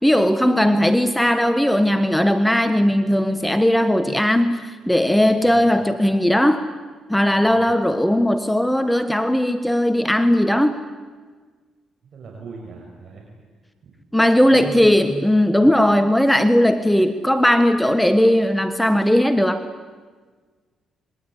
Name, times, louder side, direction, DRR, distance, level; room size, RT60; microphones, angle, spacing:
voice 1, 0.0-6.7 7.1-10.8 14.1-19.6, left 1 dB, 5° left, 10 dB, 1.4 m, -18 dB
voice 2, 5.4-5.7 7.4-7.7 12.1-13.3 13.8-13.9 14.5-15.0, right 4 dB, 60° right, 0 dB, 6.0 m, -39 dB
26.5 x 22.5 x 10.0 m, 1.5 s
cardioid pair, 90°, 0 cm